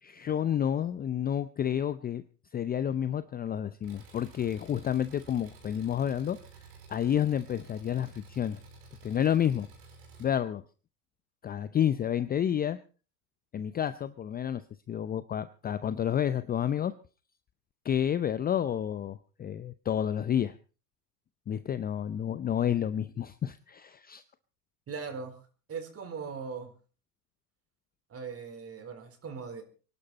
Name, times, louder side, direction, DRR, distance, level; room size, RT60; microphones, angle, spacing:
voice 1, 0.0-2.2 2.5-6.4 6.9-8.6 9.0-9.7 10.2-10.6 11.4-12.8 13.5-16.9 17.8-20.5 21.5-24.2, left 9 dB, 20° left, 13 dB, 0.6 m, -30 dB
Engine, 3.8-10.2, right 3 dB, 70° right, 6.0 m, -52 dB
voice 2, 24.9-25.4 25.7-26.7 28.1-29.6, right 5 dB, 30° right, 8 dB, 4.0 m, -39 dB
24.5 x 11.5 x 4.2 m, 0.37 s
hypercardioid pair, 90°, 48 cm